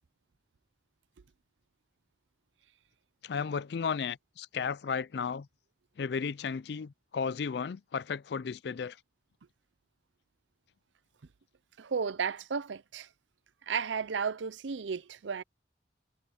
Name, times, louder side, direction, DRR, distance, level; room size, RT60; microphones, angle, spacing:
voice 1, 3.2-5.5 6.0-9.0, left 6 dB, 65° left, 0.4 m, -34 dB
voice 2, 11.8-13.1 13.7-15.4, right 6 dB, 90° right, 0.6 m, -33 dB
head